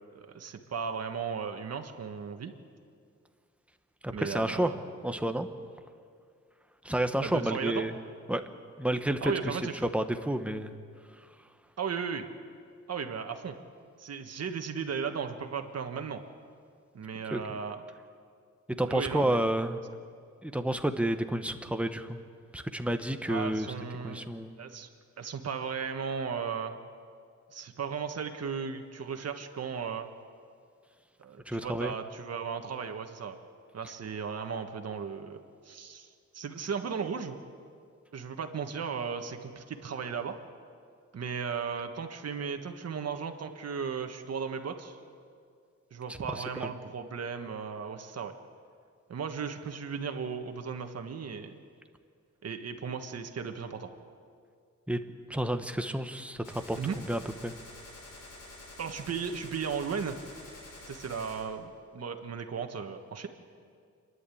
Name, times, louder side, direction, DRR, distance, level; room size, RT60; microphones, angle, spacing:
voice 1, 0.1-2.5 4.1-4.8 7.2-7.9 9.2-9.8 11.8-12.3 12.9-13.5 14.0-16.2 16.9-17.8 18.9-19.5 23.3-24.2 24.6-24.9 25.2-26.8 27.5-30.1 31.2-33.3 33.7-35.4 35.6-36.1 36.3-37.4 38.1-40.4 41.1-45.0 45.9-48.3 49.1-51.6 52.4-53.9 56.8-57.0 58.8-60.2 60.9-63.3, right 6 dB, 55° right, 6 dB, 1.5 m, -36 dB
voice 2, 4.0-4.7 5.0-5.5 6.8-8.0 8.3-8.4 8.8-9.6 9.9-10.7 17.3-17.4 18.8-19.8 20.4-22.2 22.5-23.7 24.0-24.6 31.5-31.9 46.1-46.7 54.9-55.0 55.3-56.8 57.1-57.5, right 1 dB, 5° right, 7 dB, 1.0 m, -30 dB
Gunshot gunfire, 56.4-61.4, left 2 dB, 80° left, 6.8 m, -48 dB
28.0 x 11.0 x 8.5 m, 2.2 s
wide cardioid pair, 130°, 30 cm